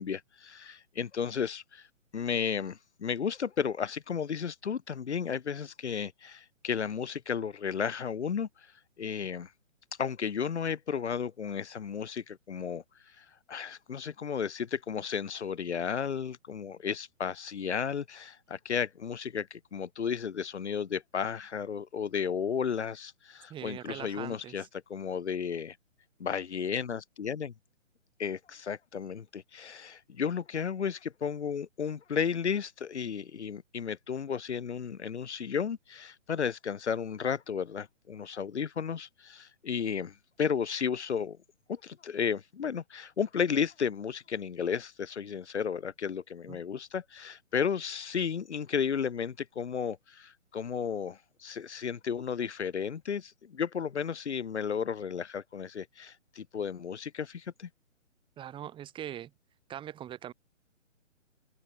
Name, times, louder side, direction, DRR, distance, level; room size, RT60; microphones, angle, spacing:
voice 1, 0.0-1.9 2.1-8.5 9.0-9.5 10.0-12.8 13.2-24.6 24.9-25.8 26.2-27.5 28.2-41.4 41.7-57.7, left 7 dB, 60° left, 1.4 m, -33 dB
voice 2, 23.5-24.7 46.5-46.6 58.4-59.3 59.7-60.3, right 11 dB, 15° right, 4.4 m, -41 dB
figure-of-eight pair, 140°, 39 cm